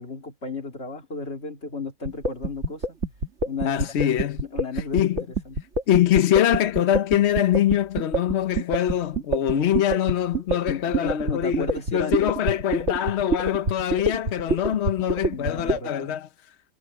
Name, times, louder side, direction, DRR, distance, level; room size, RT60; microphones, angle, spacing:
voice 1, 0.0-3.0 3.4-3.9 4.4-5.6 10.7-12.3 15.3-16.2, left 4 dB, 35° left, 2.9 m, -34 dB
sound 1, 2.1-15.8, right 2 dB, 40° right, 3.0 m, -26 dB
voice 2, 3.6-4.4 4.7-5.2 5.9-16.3, left 10 dB, 60° left, 0.7 m, -23 dB
omnidirectional pair, 1.9 m